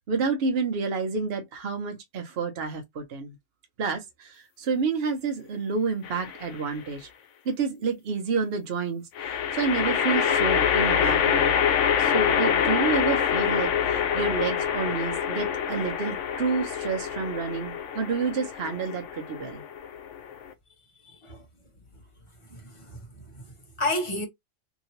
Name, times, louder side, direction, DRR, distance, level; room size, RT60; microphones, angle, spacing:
voice 1, 0.1-3.4 3.8-7.1 7.4-11.6 12.0-19.6, right 5 dB, 60° right, 0.9 m, -29 dB
sound 1, 6.0-6.6 9.2-20.5, left 8 dB, 85° left, 0.9 m, -26 dB
voice 2, 21.0-21.4 22.5-23.4 23.8-24.3, left 1 dB, 30° left, 1.0 m, -31 dB
2.9 x 2.8 x 2.8 m
omnidirectional pair, 1.2 m